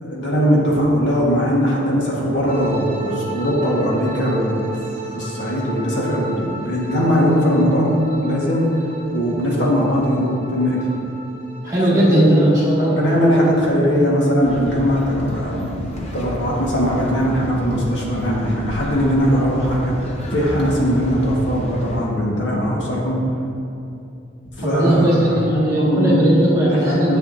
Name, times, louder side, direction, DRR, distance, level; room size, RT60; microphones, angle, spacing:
voice 1, 0.0-4.7 5.1-7.9 8.2-8.6 9.1-10.9 11.9-12.4 12.8-23.2 24.6-25.4 25.7-26.3 26.6-27.2, equal, 65° left, -5 dB, 1.6 m, -20 dB
sound 1, 2.5-14.1, right 3 dB, 35° right, 0.8 m, -34 dB
voice 2, 11.6-13.0 24.6-27.2, right 1 dB, 20° right, -8 dB, 1.9 m, -17 dB
sound 2, 14.4-22.0, equal, 35° left, 1.0 m, -32 dB
10.5 x 6.8 x 2.7 m, 2.6 s
head